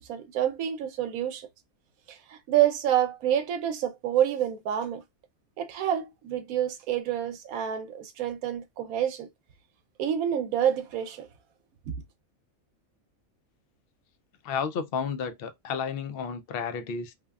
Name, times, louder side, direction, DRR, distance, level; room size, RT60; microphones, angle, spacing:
voice 1, 0.0-1.5 2.1-5.0 5.6-9.3 10.0-11.3 11.9-12.0, right 10 dB, 80° right, 1.1 m, -28 dB
voice 2, 14.4-17.1, left 6 dB, 60° left, 0.6 m, -32 dB
3.4 x 2.2 x 2.3 m
omnidirectional pair, 1.5 m